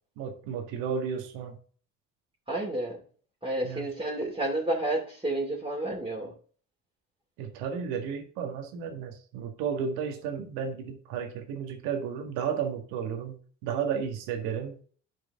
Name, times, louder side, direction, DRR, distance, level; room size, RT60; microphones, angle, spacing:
voice 1, 0.2-1.6 3.6-3.9 7.4-13.4 13.6-14.7, right 7 dB, 80° right, 4 dB, 1.8 m, -33 dB
voice 2, 2.5-3.0 3.4-6.3, right 1 dB, 15° right, -3 dB, 2.7 m, -30 dB
10.5 x 5.0 x 3.6 m, 0.43 s
hypercardioid pair, 55°, 35 cm